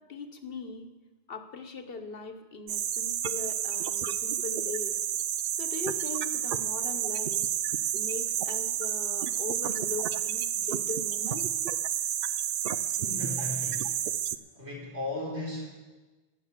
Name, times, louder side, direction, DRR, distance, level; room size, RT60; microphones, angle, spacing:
voice 1, 0.1-0.9 1.3-5.0 5.6-7.5 7.9-11.5, left 4 dB, 60° left, 7 dB, 1.3 m, -40 dB
sound 1, 2.7-14.4, right 10 dB, 65° right, 0.7 m, -30 dB
voice 2, 13.0-14.0 14.5-15.6, left 1 dB, 80° right, -5 dB, 4.9 m, -36 dB
17.5 x 6.6 x 7.4 m, 1.2 s
omnidirectional pair, 1.1 m